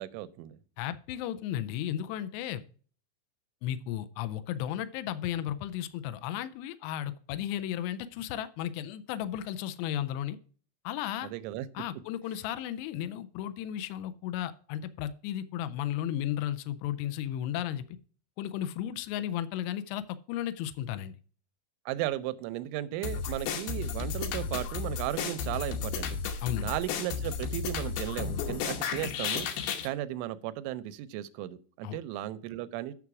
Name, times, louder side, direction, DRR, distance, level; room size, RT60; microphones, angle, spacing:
voice 1, 0.0-0.6 11.2-11.7 21.9-26.2 26.6-29.5 29.8-32.9, right 14 dB, 85° right, 14 dB, 3.0 m, -35 dB
voice 2, 0.8-2.6 3.6-10.4 10.8-11.3 11.7-17.8 18.4-21.1 26.4-26.7 31.8-32.0, left 11 dB, 85° left, 12 dB, 2.4 m, -34 dB
sound 1, 23.0-29.9, left 6 dB, 70° left, 2.6 m, -33 dB
9.8 x 5.9 x 4.7 m, 0.42 s
omnidirectional pair, 5.6 m